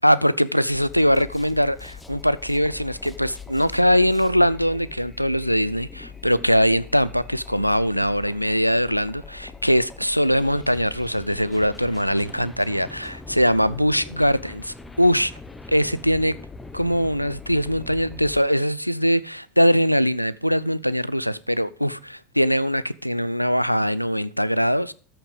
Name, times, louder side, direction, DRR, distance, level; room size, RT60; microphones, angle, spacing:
voice 1, 0.0-15.3 15.7-16.3 16.7-24.9, equal, 90° left, 0.4 m, -21 dB
sound 1, 0.7-18.4, left 4 dB, 10° left, 0.9 m, -42 dB
13.5 x 5.9 x 5.0 m
figure-of-eight pair, 80°, 0 cm